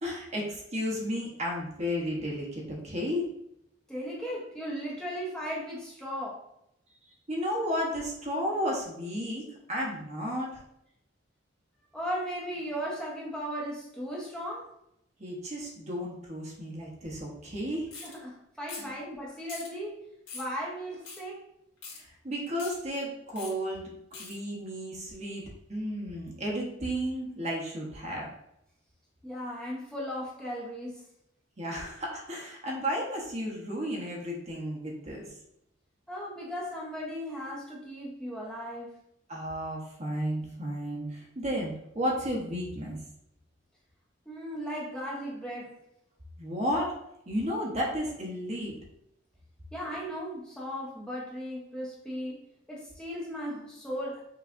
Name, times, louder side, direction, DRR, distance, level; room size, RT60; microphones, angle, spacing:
voice 1, 0.0-3.3 7.3-10.6 15.2-17.9 18.8-18.9 21.9-25.4 25.7-28.3 31.6-35.2 39.3-43.0 46.4-46.9 47.3-48.8, equal, 35° right, -2 dB, 1.0 m, -33 dB
voice 2, 3.9-6.4 11.9-14.7 18.0-20.0 20.3-21.4 29.2-31.0 36.1-39.0 44.3-45.8 49.7-54.2, equal, 5° left, -5 dB, 0.9 m, -36 dB
sound 1, 17.9-18.1 18.7-19.0 19.5-19.7 20.3-20.5 21.0-21.2 21.8-22.0 22.5-22.7 23.4-23.5 24.1-24.3, left 4 dB, 85° left, 1.8 m, -42 dB
5.8 x 3.3 x 2.6 m, 0.78 s
head